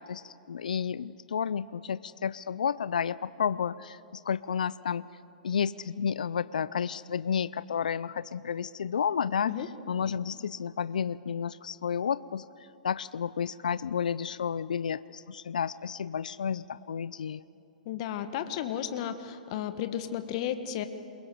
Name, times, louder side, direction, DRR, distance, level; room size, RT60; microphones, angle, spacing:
voice 1, 0.0-5.1 5.4-9.5 9.9-12.4 12.8-17.4, left 7 dB, 80° left, 18 dB, 0.5 m, -31 dB
voice 2, 17.8-20.8, left 10 dB, 50° left, 9 dB, 1.4 m, -33 dB
28.0 x 22.0 x 7.7 m, 2.7 s
hypercardioid pair, 120°, 4 cm